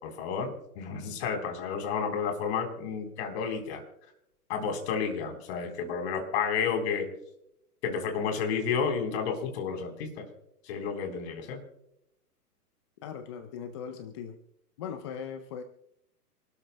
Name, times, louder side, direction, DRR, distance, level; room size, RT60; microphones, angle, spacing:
voice 1, 0.0-3.8 4.5-7.1 7.8-10.3 10.7-11.6, left 6 dB, 40° left, 4 dB, 3.8 m, -31 dB
voice 2, 13.0-14.4 14.8-15.6, left 7 dB, 20° left, 8 dB, 0.5 m, -39 dB
27.5 x 13.0 x 2.2 m, 0.79 s
figure-of-eight pair, 120°, 48 cm